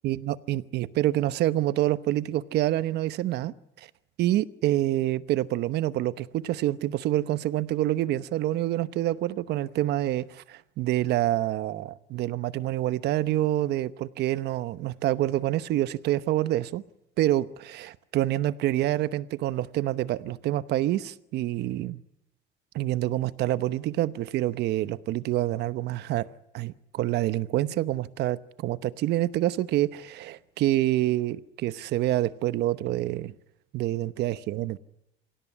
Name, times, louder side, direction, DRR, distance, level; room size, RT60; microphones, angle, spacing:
voice 1, 0.0-3.5 4.2-16.8 17.2-22.0 22.7-26.3 26.5-33.3 33.7-34.8, right 14 dB, 60° right, 15 dB, 1.0 m, -27 dB
25.5 x 17.0 x 10.0 m, 0.91 s
cardioid pair, 165°, 19 cm